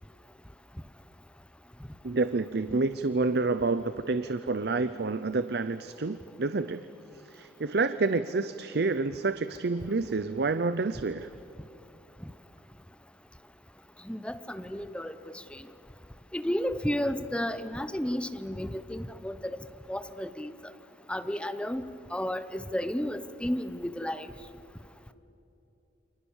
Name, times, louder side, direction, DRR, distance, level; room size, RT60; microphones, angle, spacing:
voice 1, 2.0-6.8 7.3-11.3, right 3 dB, 65° right, 12 dB, 0.6 m, -28 dB
voice 2, 14.1-15.4 16.3-19.6 19.9-20.5 21.1-21.8 22.1-24.3, equal, 5° left, 11 dB, 0.9 m, -32 dB
29.0 x 25.0 x 7.3 m, 2.9 s
head